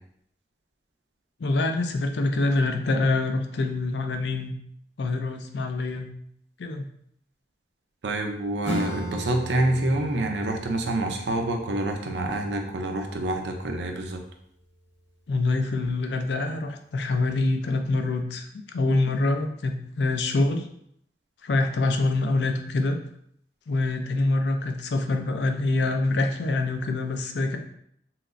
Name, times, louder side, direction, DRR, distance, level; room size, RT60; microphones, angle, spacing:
voice 1, 1.4-4.5 5.0-6.1 6.6-6.9 15.3-20.6 21.4-23.0 23.7-27.6, left 2 dB, 75° left, 5 dB, 0.4 m, -25 dB
voice 2, 8.0-14.2, right 1 dB, 80° right, 4 dB, 0.6 m, -27 dB
Acoustic guitar / Strum, 8.6-13.9, right 1 dB, 35° left, 1.0 m, -37 dB
5.7 x 2.0 x 2.5 m, 0.69 s
head